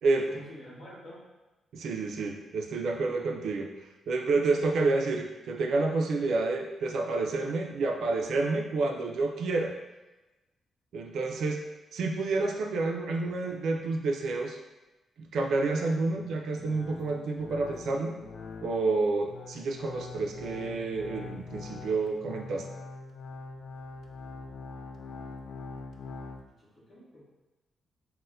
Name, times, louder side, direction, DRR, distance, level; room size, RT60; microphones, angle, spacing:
voice 1, 0.0-1.2 13.2-13.8 26.4-27.3, equal, 35° left, -9 dB, 1.4 m, -49 dB
voice 2, 1.7-3.7 4.1-9.7 10.9-11.6 11.9-14.6 15.3-18.1 18.6-22.7, right 3 dB, 70° right, 2 dB, 0.3 m, -29 dB
sound 1, 16.0-26.4, left 4 dB, 60° left, 0.3 m, -44 dB
4.1 x 2.1 x 2.5 m, 1.1 s
cardioid pair, 145°, 0 cm